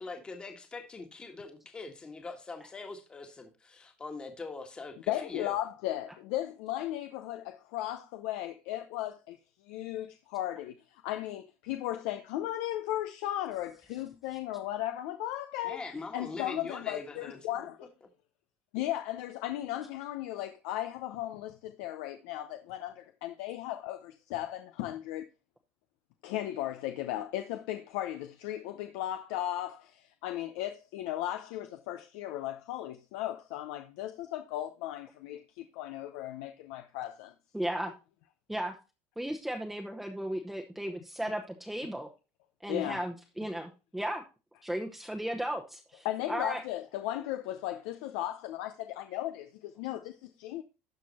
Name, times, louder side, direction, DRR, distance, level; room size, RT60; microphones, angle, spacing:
voice 1, 0.0-5.5 15.6-17.4, left 3 dB, 15° left, 1.5 m, -42 dB
voice 2, 5.1-9.4 9.6-15.8 16.1-17.9 18.7-25.3 26.2-37.3 42.7-43.0 46.0-50.6, left 13 dB, 80° left, 0.7 m, -36 dB
voice 3, 37.5-37.9 38.5-38.7 39.2-42.1 42.6-44.2 44.6-46.6, right 1 dB, 5° right, 0.9 m, -35 dB
12.5 x 4.6 x 4.2 m
cardioid pair, 135°, 5 cm